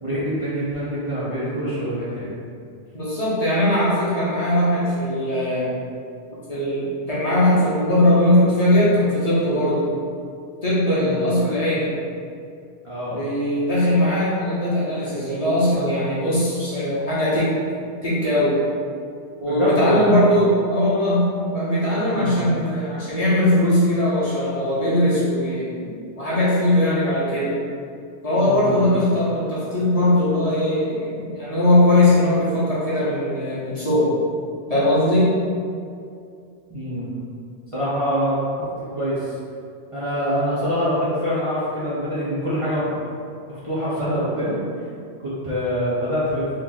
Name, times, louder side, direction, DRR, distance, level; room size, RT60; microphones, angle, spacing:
voice 1, 0.0-2.3 11.0-11.3 12.8-13.2 19.4-20.1 22.1-22.5 28.3-28.9 36.7-37.1 37.7-38.7 38.9-39.3 39.9-42.9 43.5-44.6 45.2-46.5, equal, 35° right, -11 dB, 0.6 m, -25 dB
voice 2, 2.9-5.7 6.5-9.9 10.6-11.9 13.1-17.6 18.0-18.5 19.4-25.7 26.2-27.6 28.2-34.1 34.7-35.3, left 1 dB, 35° left, -10 dB, 0.8 m, -20 dB
3.0 x 2.7 x 3.8 m, 2.4 s
omnidirectional pair, 1.2 m